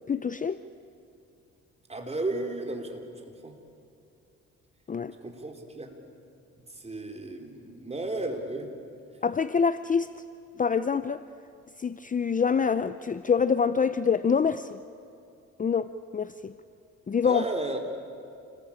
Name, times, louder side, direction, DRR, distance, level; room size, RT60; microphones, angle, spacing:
voice 1, 0.1-0.6 4.9-5.1 9.2-10.1 10.6-11.2 11.8-14.8 15.6-16.5 17.1-17.4, left 6 dB, 25° left, 12 dB, 0.6 m, -26 dB
voice 2, 1.9-3.5 5.2-5.9 6.7-8.7 17.2-17.8, right 2 dB, 20° right, 3 dB, 4.1 m, -34 dB
29.0 x 20.0 x 8.8 m, 2.6 s
cardioid pair, 90°, 30 cm